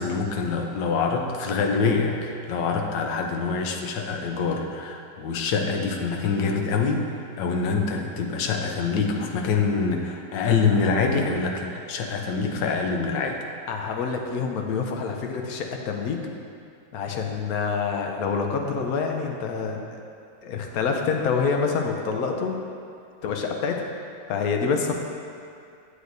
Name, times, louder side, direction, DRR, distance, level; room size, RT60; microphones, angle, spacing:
voice 1, 0.0-7.1 7.4-13.4, left 4 dB, 85° left, 3 dB, 1.4 m, -25 dB
voice 2, 13.7-16.2 16.9-20.0 20.4-22.6 23.2-23.9 24.3-24.9, left 5 dB, 65° left, 2 dB, 1.0 m, -27 dB
8.1 x 7.8 x 2.6 m, 2.4 s
omnidirectional pair, 1.9 m